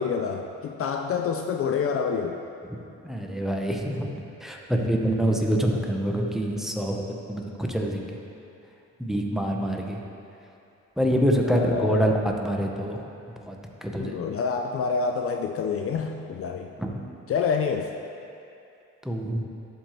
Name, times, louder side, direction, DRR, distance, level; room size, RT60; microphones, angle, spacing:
voice 1, 0.0-2.4 11.4-12.2 14.0-16.7 17.3-17.9, left 6 dB, 50° left, 4 dB, 0.4 m, -27 dB
voice 2, 3.0-4.1 4.4-7.0 7.3-8.2 9.0-10.0 11.0-12.1 12.4-13.1 13.5-14.2 16.8-16.9 19.0-19.4, equal, ahead, 1 dB, 0.7 m, -26 dB
11.5 x 4.4 x 3.0 m, 2.6 s
cardioid pair, 90°, 30 cm